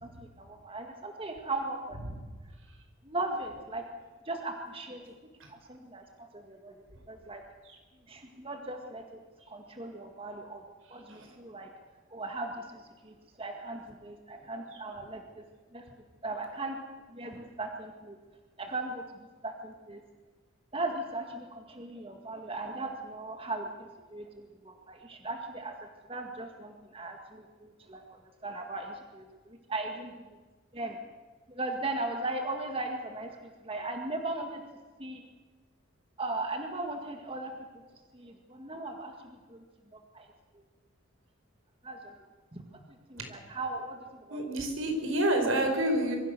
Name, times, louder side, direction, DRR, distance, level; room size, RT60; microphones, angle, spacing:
voice 1, 0.0-2.1 3.0-3.9 4.3-5.0 5.5-7.4 8.1-10.6 10.9-11.7 12.1-15.4 15.7-15.8 16.2-16.8 17.1-18.2 18.6-20.0 20.7-25.8 26.1-28.1 28.4-30.1 30.7-31.0 31.5-34.6 35.0-35.2 36.2-37.5 38.1-39.6 39.9-40.3 41.8-42.1 42.5-42.6 43.1-44.4, right 2 dB, 25° right, 3 dB, 1.9 m, -38 dB
voice 2, 44.3-46.2, right 1 dB, 70° right, 4 dB, 5.3 m, -28 dB
26.5 x 23.0 x 6.8 m, 1.3 s
head